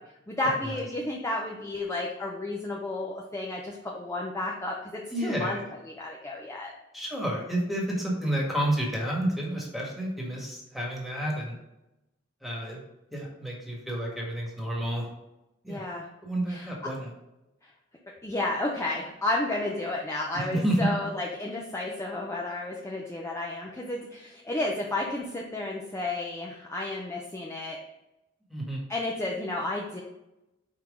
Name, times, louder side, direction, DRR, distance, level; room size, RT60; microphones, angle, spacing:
voice 1, 0.3-5.6 6.0-6.7 15.7-16.1 16.5-16.7 17.6-17.7 18.2-27.8 28.9-30.0, left 2 dB, 15° left, -2 dB, 0.6 m, -32 dB
voice 2, 5.1-5.7 6.9-11.5 12.4-12.8 13.1-15.1 15.6-15.8 16.2-17.1 20.5-20.8 28.5-28.8, right 1 dB, ahead, -3 dB, 1.6 m, -30 dB
5.7 x 4.5 x 3.7 m, 0.92 s
head